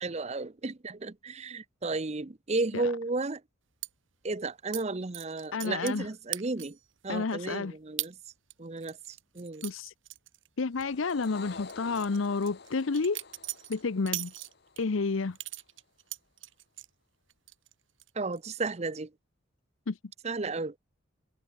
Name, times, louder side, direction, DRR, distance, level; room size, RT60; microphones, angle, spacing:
voice 1, 0.0-3.4 4.2-6.8 7.0-8.1 8.6-9.0 9.3-9.6 18.2-19.1 20.2-20.7, right 3 dB, 30° right, 0.7 m, -33 dB
sound 1, 3.8-3.9 4.7-4.8 5.1-6.0 6.3-6.9 7.3-7.4 8.0-8.1 8.5-10.8 11.1-11.3 11.7-14.8 15.4-16.9 17.3-17.7 18.0-18.4, right 16 dB, 70° right, 2.6 m, -39 dB
voice 2, 5.5-6.1 7.1-7.8 9.6-9.9 10.6-13.2 13.7-14.3 14.8-15.4 19.9-20.0, left 4 dB, 75° left, 0.7 m, -30 dB
sound 2, 10.7-15.3, left 4 dB, 50° left, 1.2 m, -49 dB
head